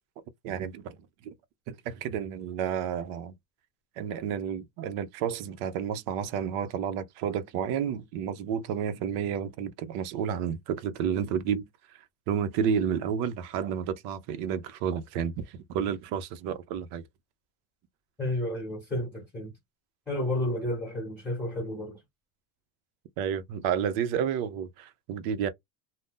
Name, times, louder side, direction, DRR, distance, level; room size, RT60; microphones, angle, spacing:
voice 1, 0.4-1.0 1.2-1.3 1.7-3.3 4.0-11.7 12.3-17.0 23.2-25.5, right 8 dB, 55° right, 0.6 m, -31 dB
voice 2, 18.2-19.5 20.1-22.0, left 1 dB, 5° left, 1.1 m, -31 dB
2.6 x 2.0 x 3.5 m
cardioid pair, 155°, 46 cm